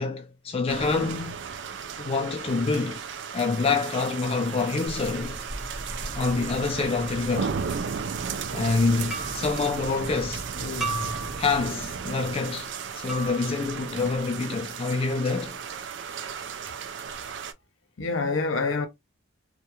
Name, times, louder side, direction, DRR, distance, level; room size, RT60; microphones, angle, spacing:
voice 1, 0.0-1.4 2.0-3.0 3.3-5.4 6.1-7.6 8.5-10.5 11.4-15.6, left 4 dB, 30° left, 0.3 m, -27 dB
sound 1, 0.7-17.5, right 6 dB, 65° right, 0.3 m, -35 dB
sound 2, 4.9-11.7, right 1 dB, 45° right, 1.0 m, -39 dB
sound 3, 9.1-9.6 10.8-11.7 13.1-13.7, right 3 dB, 5° right, 0.7 m, -35 dB
voice 2, 10.6-11.4 18.0-18.9, left 3 dB, 80° left, 0.6 m, -28 dB
2.3 x 2.1 x 2.9 m
head